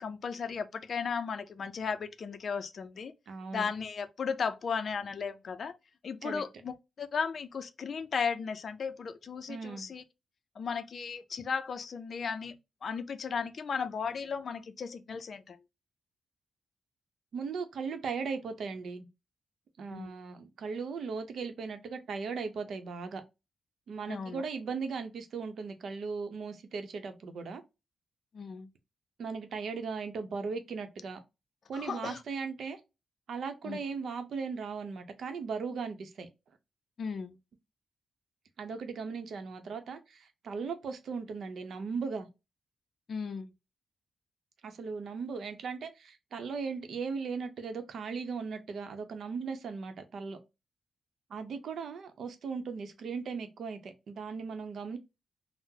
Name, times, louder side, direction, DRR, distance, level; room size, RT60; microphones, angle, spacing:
voice 1, 0.0-3.1 3.5-5.7 6.0-10.0 10.6-12.5 12.8-15.6 19.9-20.1 24.1-24.4 28.3-28.7 31.7-32.2 33.6-33.8 37.0-37.4 43.1-43.5, left 6 dB, 55° left, 0.4 m, -35 dB
voice 2, 3.3-3.7 6.2-6.4 9.5-9.9 17.3-19.1 19.8-23.2 23.9-27.6 29.2-31.2 31.7-32.8 33.3-36.3 38.6-42.3 44.6-50.4 51.3-55.0, right 5 dB, 70° right, 0.7 m, -38 dB
3.7 x 2.0 x 2.7 m
cardioid pair, 100°, 0 cm